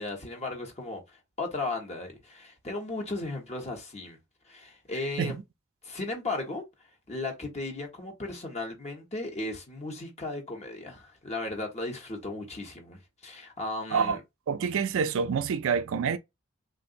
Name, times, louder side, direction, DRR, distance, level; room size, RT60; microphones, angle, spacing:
voice 1, 0.0-4.2 4.4-5.4 5.8-6.6 7.1-14.2, left 2 dB, 30° left, 1.1 m, -36 dB
voice 2, 14.5-16.2, right 6 dB, 65° right, 0.4 m, -27 dB
3.7 x 2.5 x 2.5 m
head